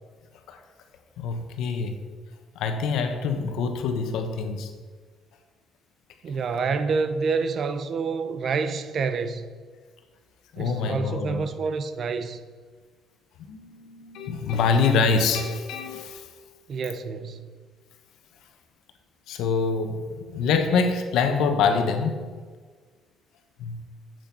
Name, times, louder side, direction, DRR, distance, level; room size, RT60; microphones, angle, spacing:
voice 1, 1.2-2.0 2.5-4.7 10.5-11.4 13.5-16.3 19.3-22.2 23.6-23.8, left 5 dB, 80° left, 1.2 m, -25 dB
voice 2, 6.2-9.5 10.6-12.4 16.7-17.5, right 5 dB, 45° right, 0.7 m, -28 dB
9.1 x 7.9 x 5.4 m
cardioid pair, 135°, 0 cm